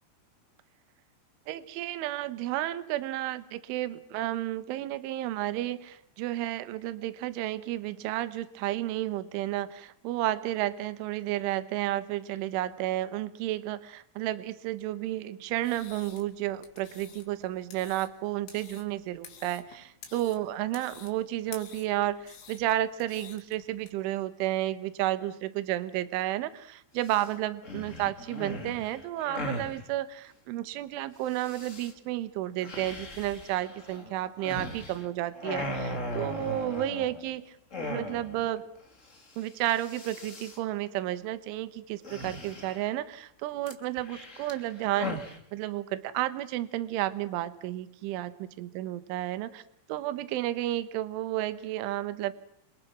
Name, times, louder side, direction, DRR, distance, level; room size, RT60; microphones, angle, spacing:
voice 1, 1.5-37.4 37.8-38.7 39.4-49.6 49.9-52.3, right 14 dB, 75° right, 13 dB, 3.6 m, -32 dB
sound 1, 15.5-23.9, left 7 dB, 65° left, 5.1 m, -51 dB
sound 2, 27.0-27.3 27.6-29.8 31.3-31.9 32.6-35.1 35.3-37.3 37.7-38.5 38.8-38.9 39.1-39.4 39.7-40.6 42.0-43.0 43.7-45.4, left 1 dB, 25° left, 1.8 m, -38 dB
29.5 x 27.0 x 6.1 m, 0.69 s
omnidirectional pair, 5.8 m